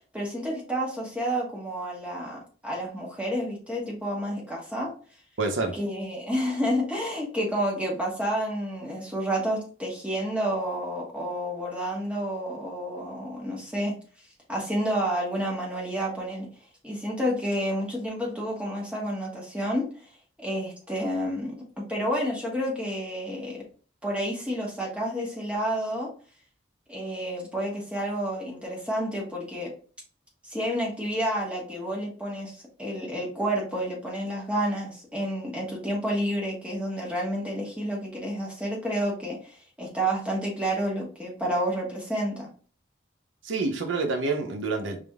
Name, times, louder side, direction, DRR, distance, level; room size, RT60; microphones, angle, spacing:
voice 1, 0.1-4.9 5.7-13.9 14.5-16.5 16.8-19.9 20.4-21.6 21.9-23.6 24.0-26.1 26.9-29.7 30.4-42.5, equal, 5° right, 1.2 m, -30 dB
voice 2, 5.4-5.8 43.4-45.0, right 3 dB, 85° right, 0.8 m, -27 dB
4.8 x 3.6 x 2.3 m
head